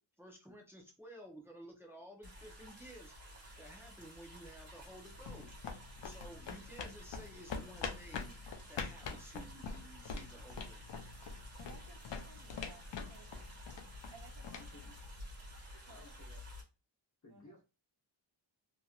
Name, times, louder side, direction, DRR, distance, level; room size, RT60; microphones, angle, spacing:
voice 1, 0.2-5.5 6.0-8.3 8.7-10.8, right 1 dB, 5° right, -1 dB, 0.8 m, -54 dB
sound 1, 2.2-16.6, equal, 30° right, 1.4 m, -53 dB
sound 2, 4.9-15.6, left 5 dB, 65° left, 0.6 m, -45 dB
voice 2, 11.6-13.2 14.1-14.7 15.7-16.1 17.3-17.4, right 6 dB, 55° right, 5 dB, 0.6 m, -59 dB
voice 3, 14.5-15.0 15.9-16.4 17.2-17.6, left 2 dB, 35° left, -1 dB, 1.2 m, -58 dB
2.9 x 2.8 x 2.4 m, 0.29 s
wide cardioid pair, 125°, 47 cm